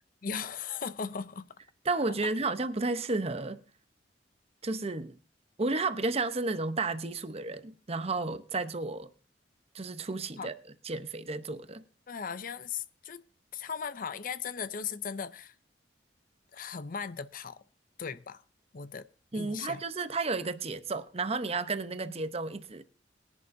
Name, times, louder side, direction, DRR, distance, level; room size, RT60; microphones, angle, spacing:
voice 1, 0.2-1.5 10.4-10.5 12.1-13.2 13.5-15.5 16.5-17.6 18.0-18.4 18.7-19.1 19.3-19.8, left 6 dB, 50° left, 0.6 m, -37 dB
voice 2, 1.8-3.6 4.6-5.2 5.6-9.1 9.7-10.5 10.8-11.8 19.3-22.8, right 3 dB, 35° right, 0.8 m, -32 dB
21.0 x 10.5 x 2.7 m
head